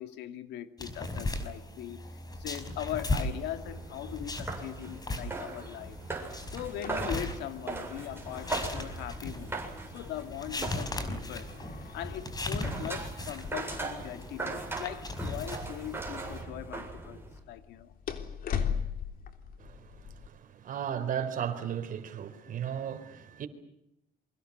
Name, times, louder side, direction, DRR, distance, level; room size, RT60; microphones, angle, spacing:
voice 1, 0.0-2.0 2.4-6.0 6.5-11.5 11.9-17.9, left 11 dB, 85° left, 2.4 m, -40 dB
sound 1, 0.8-16.4, left 2 dB, 20° left, 5.1 m, -38 dB
sound 2, 2.5-17.4, right 3 dB, 15° right, 7.8 m, -40 dB
sound 3, 6.3-20.3, left 7 dB, 55° left, 3.5 m, -42 dB
voice 2, 19.6-23.5, right 8 dB, 50° right, 4.1 m, -36 dB
28.0 x 24.5 x 6.8 m
cardioid pair, 110°, 17 cm